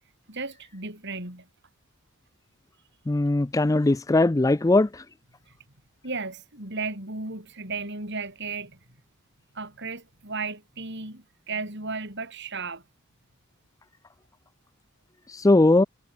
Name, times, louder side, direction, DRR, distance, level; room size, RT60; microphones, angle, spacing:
voice 1, 0.3-1.5 6.0-8.8 9.5-12.8, right 4 dB, 55° right, 7.6 m, -34 dB
voice 2, 3.1-4.9 15.3-15.8, left 2 dB, 15° left, 0.4 m, -20 dB
head